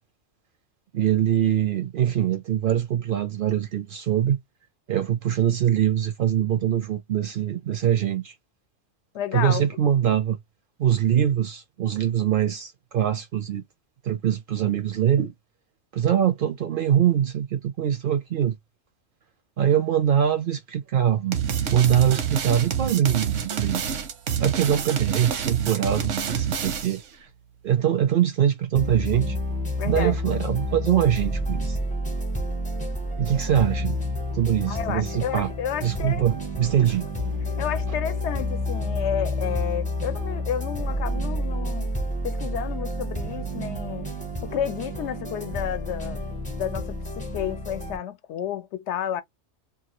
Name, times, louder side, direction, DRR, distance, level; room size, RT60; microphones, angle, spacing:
voice 1, 0.9-4.4 4.9-8.3 9.3-10.4 10.8-13.6 14.0-15.3 15.9-18.6 19.6-21.4 21.7-23.8 24.4-27.0 27.6-29.4 29.8-31.8 33.2-34.0 34.3-35.5 35.8-37.1, right 10 dB, 60° right, 0.6 m, -23 dB
voice 2, 9.1-9.6 29.8-30.2 33.5-33.7 34.7-36.3 37.6-41.9 42.2-44.1 44.4-46.3 46.6-49.2, left 9 dB, 75° left, 0.8 m, -31 dB
sound 1, 21.3-27.1, right 7 dB, 85° right, 1.0 m, -27 dB
sound 2, 28.7-48.0, left 1 dB, 10° left, 0.5 m, -29 dB
2.7 x 2.3 x 2.9 m
omnidirectional pair, 1.2 m